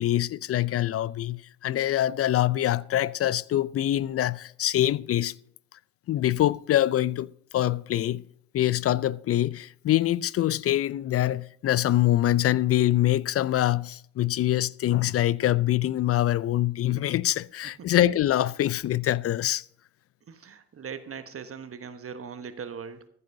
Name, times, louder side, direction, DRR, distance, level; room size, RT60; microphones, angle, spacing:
voice 1, 0.0-5.3 6.1-8.2 8.5-19.6, left 13 dB, 35° left, 0.5 m, -24 dB
voice 2, 20.3-23.1, right 6 dB, 35° right, 1.2 m, -40 dB
14.5 x 11.0 x 2.7 m
hypercardioid pair, 60°, 41 cm